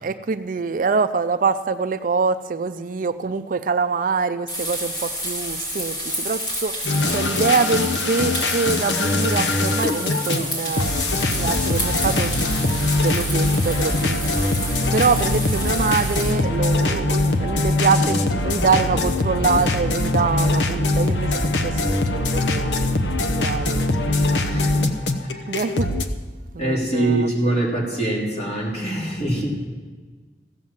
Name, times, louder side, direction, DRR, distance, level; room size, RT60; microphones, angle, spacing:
voice 1, 0.0-11.0 11.4-14.5 14.9-22.7 23.2-24.5 25.5-25.9 26.5-27.6, right 4 dB, 50° right, 11 dB, 0.4 m, -25 dB
sound 1, 4.5-16.3, equal, 70° left, 4.5 m, -30 dB
sound 2, 6.8-26.0, left 2 dB, 85° left, 0.9 m, -22 dB
voice 2, 24.4-24.8 25.2-25.5 26.6-29.5, right 1 dB, 40° left, -4 dB, 3.2 m, -24 dB
15.0 x 7.6 x 7.3 m, 1.4 s
head